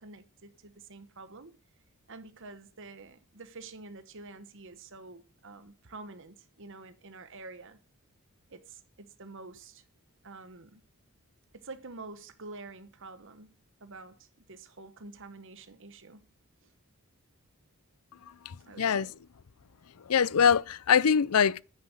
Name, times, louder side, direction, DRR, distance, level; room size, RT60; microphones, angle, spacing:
voice 1, 0.0-1.5 2.1-7.8 8.5-9.8 10.2-10.8 11.5-13.5 13.8-16.3 16.6-16.7 18.7-19.1, right 3 dB, 60° right, 1.3 m, -48 dB
voice 2, 18.5-19.1 20.1-21.6, left 7 dB, 80° left, 0.5 m, -24 dB
10.5 x 9.5 x 6.1 m
head